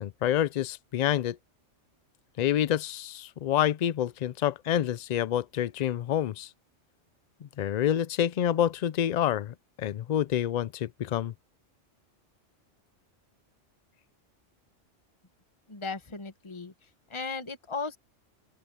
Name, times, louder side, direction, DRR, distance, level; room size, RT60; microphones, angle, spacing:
voice 1, 0.0-1.4 2.4-6.5 7.4-11.3, left 10 dB, 75° left, 0.4 m, -28 dB
voice 2, 15.7-16.7 17.1-18.0, left 4 dB, 25° left, 1.5 m, -36 dB
open air
omnidirectional pair, 1.3 m